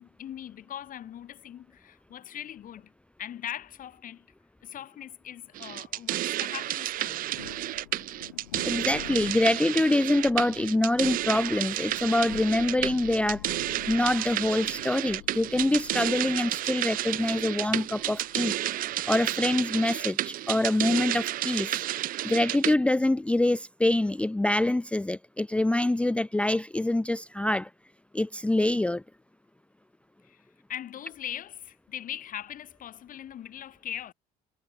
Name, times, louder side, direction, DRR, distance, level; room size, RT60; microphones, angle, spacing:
voice 1, 0.0-2.9 3.2-4.3 4.6-7.3 30.2-30.4 30.7-34.1, left 10 dB, 50° left, 4.3 m, -40 dB
sound 1, 5.5-22.7, right 14 dB, 50° right, 0.8 m, -31 dB
Thunder, 6.9-20.1, left 15 dB, 75° left, 1.6 m, -47 dB
voice 2, 8.6-13.5 13.9-18.6 19.1-21.8 22.2-27.7 28.1-29.0, left 1 dB, 5° left, 0.6 m, -25 dB
figure-of-eight pair, 55°, 19 cm